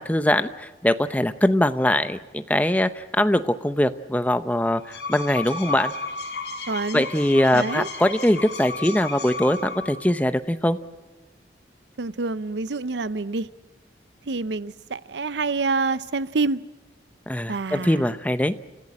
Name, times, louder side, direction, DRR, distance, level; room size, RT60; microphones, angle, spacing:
voice 1, 0.0-5.9 6.9-10.8 17.3-18.5, left 1 dB, 10° left, 0.7 m, -22 dB
sound 1, 4.7-10.1, left 3 dB, 75° left, 5.5 m, -33 dB
voice 2, 6.7-7.1 7.5-7.9 12.0-13.5 14.3-16.6 17.5-18.1, right 3 dB, 85° right, 0.7 m, -27 dB
30.0 x 15.0 x 8.7 m
head